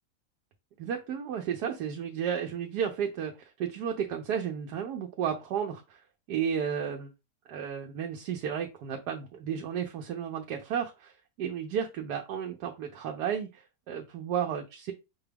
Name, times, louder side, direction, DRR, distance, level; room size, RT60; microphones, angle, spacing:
voice 1, 0.8-6.0 6.3-7.1 7.5-14.9, right 8 dB, 90° right, 3 dB, 1.2 m, -33 dB
5.9 x 2.3 x 3.3 m, 0.26 s
omnidirectional pair, 1.7 m